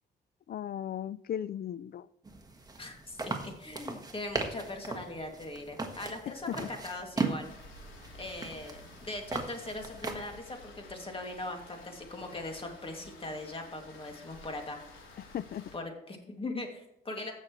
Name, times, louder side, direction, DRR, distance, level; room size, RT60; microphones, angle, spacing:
voice 1, 0.5-2.1 6.5-6.7 15.2-15.7, left 10 dB, 50° left, 18 dB, 0.5 m, -37 dB
sound 1, 2.2-10.4, right 3 dB, 20° right, 1.4 m, -38 dB
voice 2, 2.8-7.5 8.2-15.0 15.7-17.3, left 2 dB, 25° left, 3 dB, 2.4 m, -40 dB
Rain, 7.4-15.7, left 2 dB, 85° left, 3.2 m, -52 dB
15.5 x 6.5 x 3.1 m, 0.77 s
cardioid pair, 90°, 20 cm